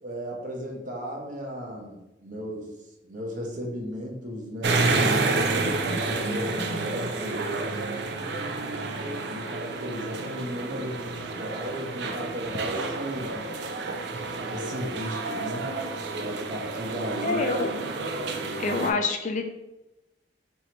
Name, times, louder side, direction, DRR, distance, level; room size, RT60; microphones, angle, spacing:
voice 1, 0.0-2.7 3.1-5.5 5.8-7.6 8.2-13.4 14.5-15.7 16.2-17.4, equal, 45° right, 0 dB, 0.8 m, -35 dB
sound 1, 4.6-18.9, right 3 dB, 65° right, 0.4 m, -29 dB
voice 2, 17.2-17.7 18.6-19.4, left 3 dB, 45° left, 5 dB, 0.4 m, -26 dB
3.0 x 2.7 x 4.4 m, 0.94 s
head